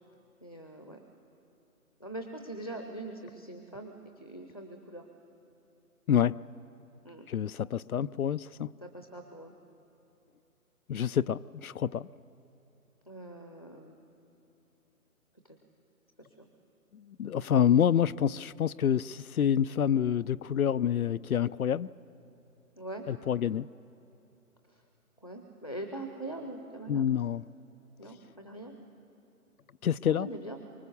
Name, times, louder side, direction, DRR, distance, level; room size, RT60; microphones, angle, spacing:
voice 1, 0.4-1.0 2.0-5.0 7.0-7.3 8.8-9.5 13.0-14.0 16.2-16.5 22.8-23.1 24.7-24.8 25.2-27.1 28.0-28.7 30.1-30.6, right 1 dB, 25° left, 4 dB, 0.7 m, -42 dB
voice 2, 6.1-6.4 7.3-8.7 10.9-12.1 16.9-21.9 23.1-23.7 26.9-27.4 29.8-30.3, left 9 dB, 70° left, 20 dB, 0.5 m, -27 dB
24.5 x 23.0 x 7.0 m, 3.0 s
hypercardioid pair, 175°, 45 cm